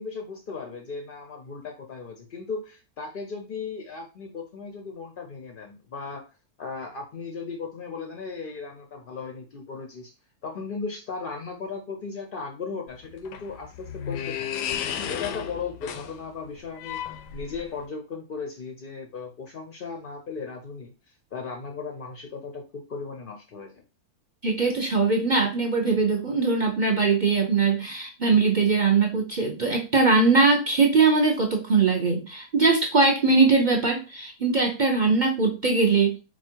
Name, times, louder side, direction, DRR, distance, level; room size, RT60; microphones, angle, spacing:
voice 1, 0.0-6.2 6.6-10.1 10.4-14.5 14.9-23.8, left 4 dB, 55° left, 3 dB, 0.6 m, -36 dB
toilet door, 12.9-17.8, left 9 dB, 85° left, 1.2 m, -34 dB
voice 2, 24.4-36.2, right 4 dB, 55° right, 1 dB, 0.5 m, -21 dB
4.4 x 2.3 x 4.4 m, 0.30 s
omnidirectional pair, 1.7 m